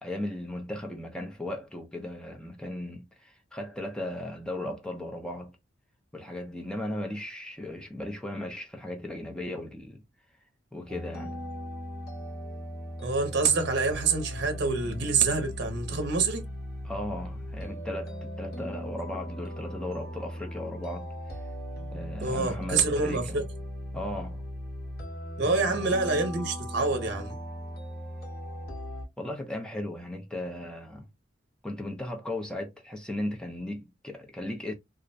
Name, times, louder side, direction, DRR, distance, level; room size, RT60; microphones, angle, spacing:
voice 1, 0.0-5.6 6.1-10.0 10.7-11.4 16.8-21.1 21.9-23.5 23.9-24.4 25.5-25.8 29.2-31.1 31.6-34.7, left 1 dB, 5° left, 0.4 m, -36 dB
sound 1, 10.9-29.0, equal, 50° left, 0.8 m, -38 dB
voice 2, 13.0-16.4 22.2-23.4 25.4-27.4, right 4 dB, 60° right, 0.6 m, -26 dB
2.4 x 2.0 x 2.5 m
head